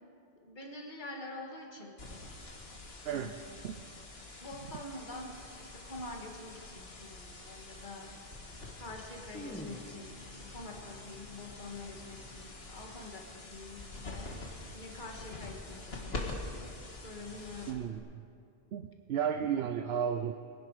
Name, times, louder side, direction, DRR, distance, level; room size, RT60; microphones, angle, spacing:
voice 1, 0.4-1.9 3.1-3.5 4.4-8.1 8.8-14.3 14.7-16.3 17.0-17.8, left 2 dB, 50° left, 0 dB, 2.0 m, -46 dB
sound 1, 1.4-1.6 2.2-2.7 3.1-3.7 7.1-7.2 7.4-7.8 8.1-8.3 8.7-8.8 9.0-9.8, equal, 10° left, 1.4 m, -48 dB
sound 2, 2.0-18.0, left 2 dB, 80° left, 2.0 m, -46 dB
voice 2, 3.0-3.4 3.6-3.8 17.7-18.0 18.7-20.3, right 8 dB, 85° right, 8 dB, 0.9 m, -33 dB
Bowed string instrument, 9.0-13.4, left 1 dB, 30° right, 1.7 m, -58 dB
23.0 x 11.5 x 4.9 m, 2.4 s
omnidirectional pair, 1.0 m